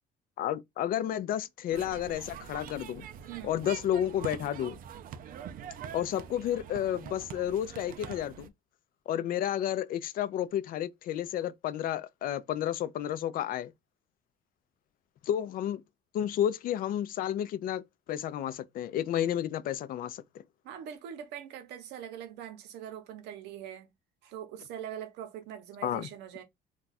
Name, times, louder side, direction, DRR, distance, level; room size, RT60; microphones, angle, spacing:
voice 1, 0.4-3.1 3.4-4.8 5.9-8.5 9.1-13.7 15.3-15.8 16.1-17.8 18.1-20.2 25.8-26.1, left 11 dB, 60° left, 0.4 m, -31 dB
sound 1, 1.7-8.5, right 9 dB, 55° right, 0.4 m, -44 dB
voice 2, 3.3-3.6 20.6-23.9 24.2-26.4, right 9 dB, 85° right, 0.7 m, -42 dB
2.3 x 2.3 x 3.9 m
cardioid pair, 110°, 17 cm